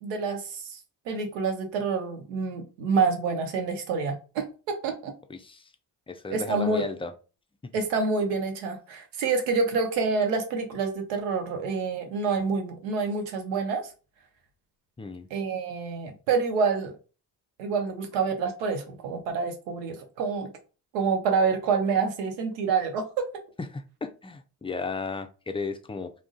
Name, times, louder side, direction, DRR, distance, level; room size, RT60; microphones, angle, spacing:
voice 1, 0.0-0.8 1.1-5.1 6.3-6.8 7.7-13.9 15.3-16.9 17.6-20.5 20.9-23.3, right 5 dB, 90° right, 0.7 m, -27 dB
voice 2, 5.3-5.7 6.1-7.1 7.6-7.7 15.0-15.3 23.7-26.1, left 4 dB, 15° left, 0.3 m, -35 dB
2.3 x 2.1 x 3.7 m
hypercardioid pair, 45°, 47 cm